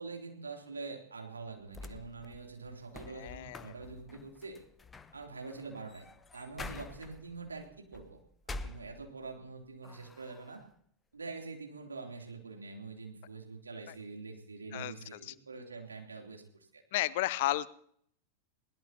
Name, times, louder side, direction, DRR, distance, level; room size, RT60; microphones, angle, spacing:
voice 1, 0.0-4.6 5.1-6.1 6.3-8.2 8.5-10.6 11.1-16.4 16.7-16.8, right 4 dB, 75° right, 1 dB, 3.1 m, -45 dB
sound 1, 1.7-9.4 9.8-10.6, left 3 dB, 15° left, 0.8 m, -48 dB
voice 2, 3.1-3.7 13.9-14.0 14.7-15.3 16.9-17.7, left 16 dB, 50° left, 19 dB, 0.6 m, -33 dB
20.5 x 19.5 x 2.9 m, 0.64 s
figure-of-eight pair, 90°, 0 cm